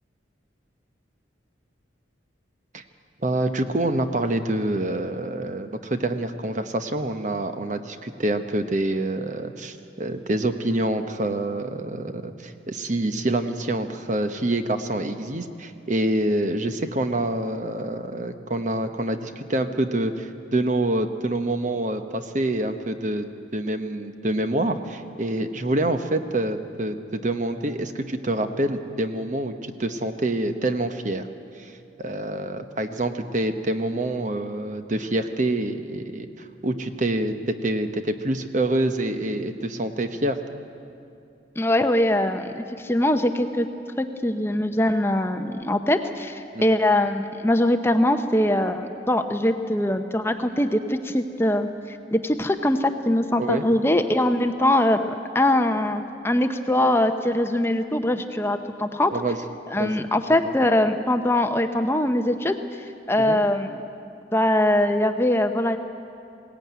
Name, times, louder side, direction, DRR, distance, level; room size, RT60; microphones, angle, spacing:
voice 1, 3.2-23.3 23.5-31.3 31.6-31.7 32.0-40.4 46.5-46.7 53.4-53.6 59.1-59.4 59.7-59.9 63.2-63.4, right 1 dB, 40° right, 8 dB, 1.0 m, -26 dB
voice 2, 41.6-43.7 44.0-59.1 59.7-62.6 63.1-63.8 64.3-65.8, left 1 dB, 15° left, 7 dB, 0.7 m, -22 dB
21.0 x 17.5 x 9.4 m, 2.6 s
head